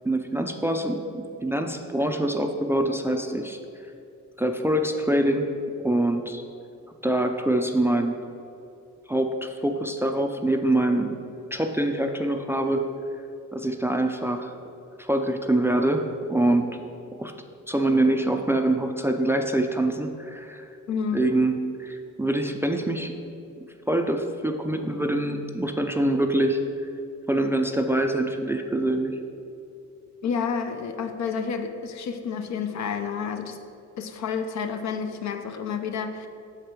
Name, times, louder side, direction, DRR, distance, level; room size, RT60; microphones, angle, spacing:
voice 1, 0.0-3.6 4.4-5.5 5.8-6.4 7.0-8.2 9.1-11.2 11.5-12.9 13.5-14.5 15.0-16.7 17.2-17.3 17.7-20.7 21.1-23.2 23.6-26.6 27.3-29.2, right 1 dB, 10° right, 5 dB, 0.4 m, -25 dB
voice 2, 20.9-21.2 30.2-33.6 34.0-36.3, left 6 dB, 65° left, 6 dB, 0.7 m, -30 dB
6.5 x 4.9 x 4.5 m, 2.7 s
cardioid pair, 90°, 30 cm